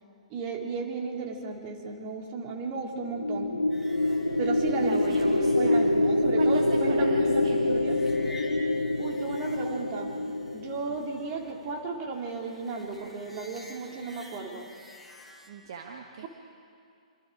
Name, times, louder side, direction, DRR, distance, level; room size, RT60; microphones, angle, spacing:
voice 1, 0.3-3.5 4.4-5.0 5.4-8.0 9.0-10.1 10.5-14.7, right 4 dB, 30° right, 1 dB, 3.1 m, -34 dB
sound 1, 3.0-11.4, left 2 dB, 80° left, 1.1 m, -26 dB
sound 2, 3.7-15.5, left 1 dB, ahead, 2.5 m, -51 dB
voice 2, 4.7-5.8 6.4-7.7 15.5-16.3, right 6 dB, 50° right, 3 dB, 1.5 m, -40 dB
25.5 x 25.5 x 5.0 m, 2.4 s
figure-of-eight pair, 115°, 4 cm